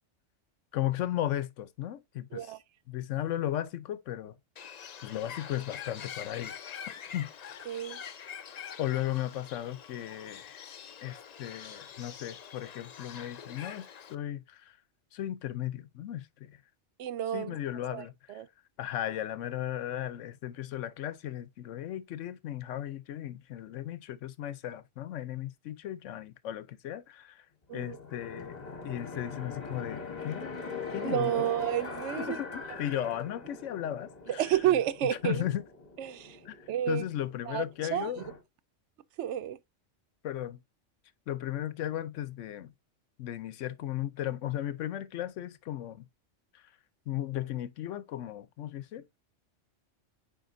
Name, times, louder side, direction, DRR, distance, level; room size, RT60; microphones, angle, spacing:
voice 1, 0.7-2.5 2.9-4.4 5.0-6.6 7.1-7.3 8.8-10.7 11.0-14.8 15.1-16.6 17.3-18.4 18.8-27.5 27.7-28.6 28.8-30.6 30.9-31.5 32.2-34.5 35.2-35.6 36.5-38.2 40.2-40.6 41.3-42.7 43.2-46.0 46.5-46.6 47.1-49.0, left 12 dB, 80° left, 1.0 m, -36 dB
voice 2, 2.3-2.6 7.7-8.0 17.0-17.6 17.9-18.5 27.7-28.0 31.0-32.4 34.3-35.4 36.0-36.4 36.7-37.0 37.5-37.7 37.9-38.2 39.2-39.6, right 11 dB, 75° right, 0.8 m, -30 dB
Bird, 4.6-14.2, left 8 dB, 55° left, 0.5 m, -45 dB
sound 1, 27.7-38.4, left 4 dB, 35° left, 1.2 m, -42 dB
9.1 x 4.4 x 2.6 m
omnidirectional pair, 1.2 m